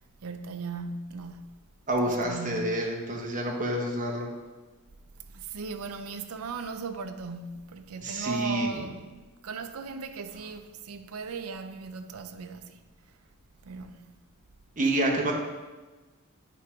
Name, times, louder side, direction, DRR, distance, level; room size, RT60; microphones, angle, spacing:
voice 1, 0.2-1.4 2.0-2.7 5.3-9.2 9.4-12.8 13.6-14.1, right 4 dB, 75° right, 0.5 m, -37 dB
voice 2, 1.9-4.3 8.0-8.9 14.8-15.3, right 1 dB, 35° right, 1.2 m, -28 dB
8.4 x 3.5 x 5.1 m
head